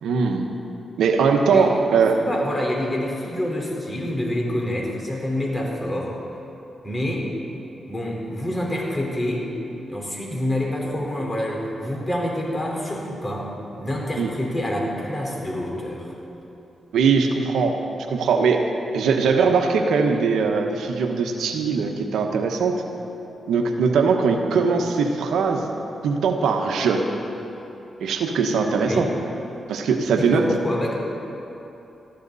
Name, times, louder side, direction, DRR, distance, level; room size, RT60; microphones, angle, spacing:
voice 1, 0.0-0.5 1.0-2.2 14.2-14.3 16.9-17.8 18.1-18.6 18.9-22.8 23.5-25.7 26.0-27.0 28.0-29.1 29.7-30.5, right 5 dB, 90° right, 4 dB, 1.1 m, -20 dB
voice 2, 2.1-6.1 6.8-7.3 7.9-9.5 9.9-13.5 13.8-16.1 28.7-29.2 30.1-30.9, left 1 dB, 25° left, -2 dB, 4.2 m, -27 dB
19.5 x 14.0 x 4.1 m, 2.9 s
cardioid pair, 70°, 0 cm